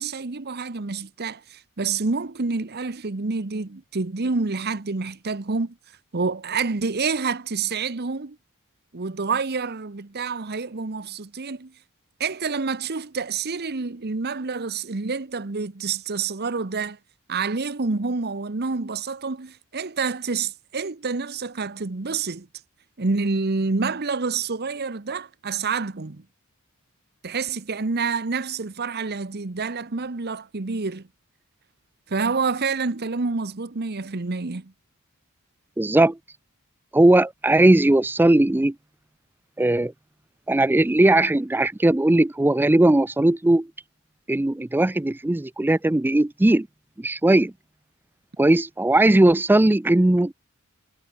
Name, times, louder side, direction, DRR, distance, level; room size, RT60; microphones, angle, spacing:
voice 1, 0.0-5.7 6.1-8.4 8.9-11.7 12.2-17.0 17.3-22.5 23.0-26.2 27.2-31.0 32.1-34.7, right 4 dB, 45° right, 0.9 m, -28 dB
voice 2, 35.8-36.2 36.9-38.7 39.6-39.9 40.5-43.7 44.3-46.7 47.0-47.5 48.4-50.3, right 1 dB, 10° right, 0.3 m, -18 dB
head